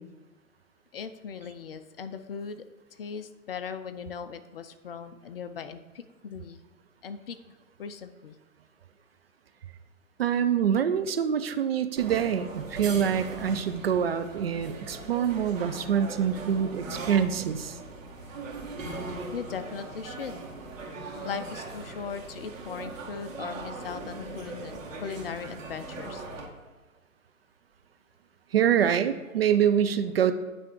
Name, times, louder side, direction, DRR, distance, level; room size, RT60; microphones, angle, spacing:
voice 1, 0.9-2.7 2.9-6.6 7.0-8.4 19.3-20.4 21.2-26.3, left 6 dB, 40° left, 11 dB, 0.6 m, -39 dB
voice 2, 10.2-17.8 28.5-30.3, right 8 dB, 45° right, 9 dB, 0.5 m, -25 dB
sound 1, 12.0-26.4, right 3 dB, 65° right, 2.1 m, -40 dB
9.7 x 3.5 x 6.7 m, 1.2 s
figure-of-eight pair, 130°, 43 cm